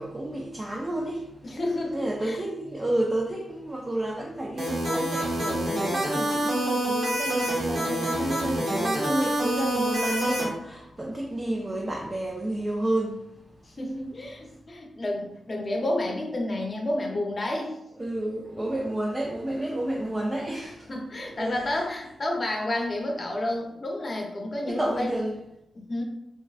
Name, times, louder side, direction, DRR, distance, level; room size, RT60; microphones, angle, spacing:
voice 1, 0.0-1.6 1.9-13.3 18.0-20.9 21.2-21.5 24.8-25.4, right 1 dB, 25° right, 0.4 m, -30 dB
voice 2, 1.4-2.4 13.6-17.8 20.5-25.1 25.7-26.0, left 1 dB, 45° left, 0.6 m, -30 dB
sound 1, 4.6-10.4, right 1 dB, 70° right, 1.3 m, -27 dB
3.4 x 2.1 x 2.3 m
cardioid pair, 70°, 0 cm